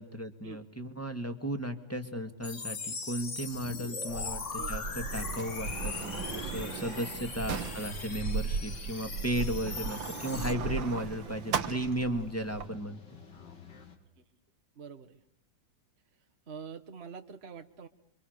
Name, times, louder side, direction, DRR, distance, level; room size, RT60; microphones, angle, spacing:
voice 1, 0.0-13.0, equal, 10° left, 7 dB, 2.0 m, -35 dB
sound 1, 2.4-10.5, left 4 dB, 40° left, 2.1 m, -40 dB
Sliding door, 4.1-12.7, right 5 dB, 90° right, 2.1 m, -37 dB
sound 2, 4.8-14.0, left 6 dB, 65° left, 3.2 m, -52 dB
voice 2, 14.7-15.2 16.5-17.9, right 6 dB, 35° right, 6 dB, 1.5 m, -46 dB
28.0 x 24.5 x 6.7 m, 0.68 s
omnidirectional pair, 2.1 m